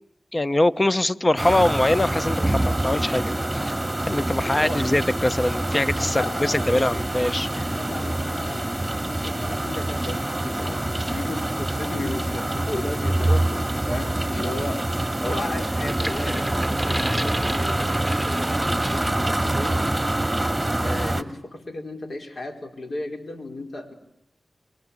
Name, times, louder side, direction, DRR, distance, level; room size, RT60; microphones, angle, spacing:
voice 1, 0.3-3.6 4.1-7.5, left 1 dB, 30° left, 14 dB, 1.0 m, -23 dB
sound 1, 1.4-21.2, right 1 dB, 15° right, 2.3 m, -25 dB
voice 2, 4.4-4.8 6.1-7.0 7.5-19.9 20.8-23.9, left 2 dB, 65° left, 5 dB, 4.6 m, -35 dB
sound 2, 15.7-19.2 19.6-19.8, right 1 dB, ahead, 2.8 m, -33 dB
29.0 x 23.5 x 8.7 m, 0.77 s
cardioid pair, 40°, 0 cm